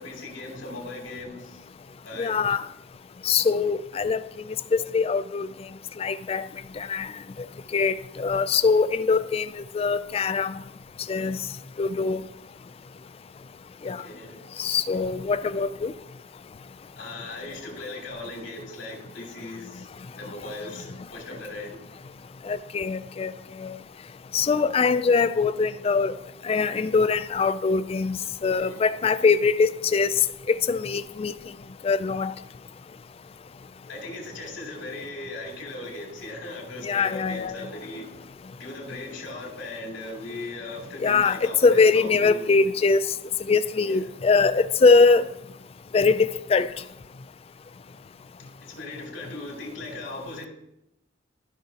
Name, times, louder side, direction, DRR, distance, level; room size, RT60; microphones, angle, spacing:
voice 1, 0.0-1.6 2.0-2.3 13.8-14.4 17.0-19.9 20.2-21.8 28.6-28.8 33.9-38.1 38.6-42.5 43.9-44.0 48.6-50.5, left 2 dB, 65° left, 2.8 m, -38 dB
voice 2, 2.2-2.7 3.2-4.2 4.7-5.5 6.0-6.5 6.8-7.1 7.7-9.5 9.7-10.6 11.1-11.4 11.8-12.2 13.8-14.0 14.6-15.9 22.5-23.3 23.6-23.8 24.3-26.1 26.4-30.1 30.5-31.3 31.8-32.3 36.8-37.7 41.0-43.0 43.5-45.2 45.9-46.7, left 4 dB, 30° left, 0.3 m, -22 dB
14.5 x 5.6 x 2.9 m
head